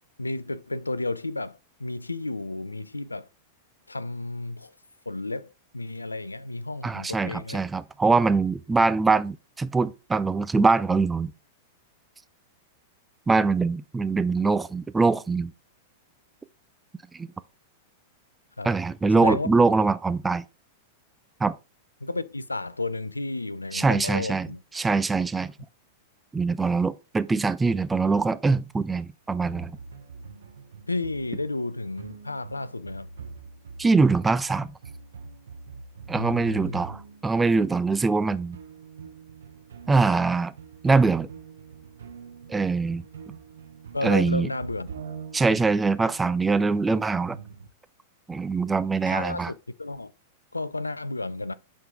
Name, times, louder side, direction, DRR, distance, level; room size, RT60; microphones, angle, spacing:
voice 1, 0.2-3.3 3.9-4.7 5.1-7.6 18.6-18.7 19.2-19.5 22.0-24.6 30.9-33.1 36.1-36.8 43.9-44.9 49.1-50.1 50.5-51.5, left 2 dB, 80° left, 0.3 m, -32 dB
voice 2, 6.8-11.3 13.3-15.5 17.1-17.3 18.6-20.4 21.4-21.5 23.7-24.5 24.7-25.5 26.3-29.7 33.8-34.7 36.1-38.6 39.9-40.5 40.8-41.3 42.5-43.0 44.0-44.5 45.3-47.4 48.3-49.5, right 4 dB, 10° right, 0.4 m, -23 dB
sound 1, 29.4-37.6 37.9-47.7, right 5 dB, 65° right, 0.7 m, -44 dB
7.9 x 3.7 x 3.6 m
figure-of-eight pair, 95°, 0 cm